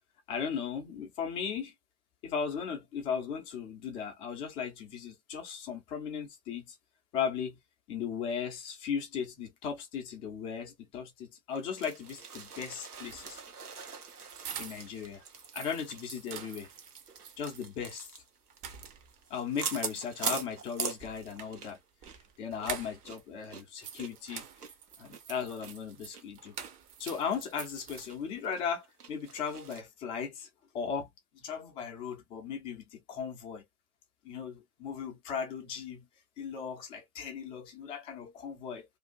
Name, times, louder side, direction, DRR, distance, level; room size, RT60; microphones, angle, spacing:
voice 1, 0.3-1.7 2.2-6.8 7.1-7.6 7.9-13.4 14.6-15.2 15.5-16.7 17.4-18.1 19.3-21.8 22.4-24.4 25.0-26.6 27.0-30.5 30.7-31.1 31.4-33.6 34.2-36.1 36.4-38.9, left 7 dB, 15° left, 0.4 m, -37 dB
sound 1, 11.5-21.8 22.0-22.2 22.6-25.7 26.1-26.2 26.6-26.7 27.1-27.7 28.1-28.2 28.5-29.8, right 5 dB, 80° right, 0.8 m, -42 dB
sound 2, 12.9-15.0 15.3-17.7 18.1-18.2 18.5-19.3 20.9-23.2 23.5-28.5, right 8 dB, 40° right, 0.8 m, -46 dB
2.6 x 2.4 x 2.2 m
figure-of-eight pair, 95°, 45 cm